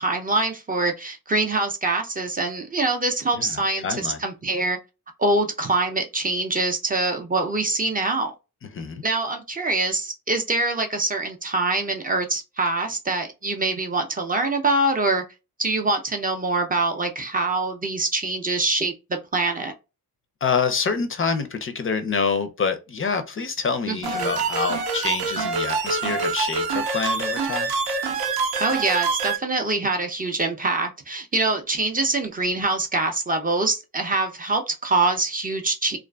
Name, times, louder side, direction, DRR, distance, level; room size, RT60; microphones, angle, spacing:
voice 1, 0.0-4.8 5.2-8.3 9.0-15.2 15.6-19.7 23.9-24.3 28.6-36.0, right 2 dB, 25° right, 0.4 m, -24 dB
voice 2, 3.8-4.2 8.7-9.0 20.4-27.7, left 5 dB, 35° left, 0.4 m, -26 dB
sound 1, 24.0-29.4, right 4 dB, 90° right, 0.6 m, -25 dB
2.4 x 2.3 x 2.2 m
wide cardioid pair, 110°, 36 cm